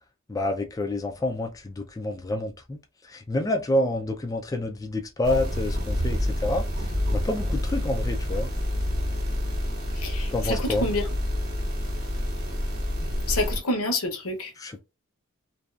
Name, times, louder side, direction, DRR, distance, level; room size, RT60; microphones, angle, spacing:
voice 1, 0.3-2.8 3.1-6.9 7.1-8.5 10.3-10.9 14.6-14.8, left 1 dB, 15° left, 0.3 m, -28 dB
sound 1, 5.2-13.6, left 1 dB, 45° right, 1.1 m, -28 dB
voice 2, 10.0-11.0 13.3-14.5, left 2 dB, 90° left, 0.8 m, -28 dB
2.6 x 2.3 x 2.4 m
head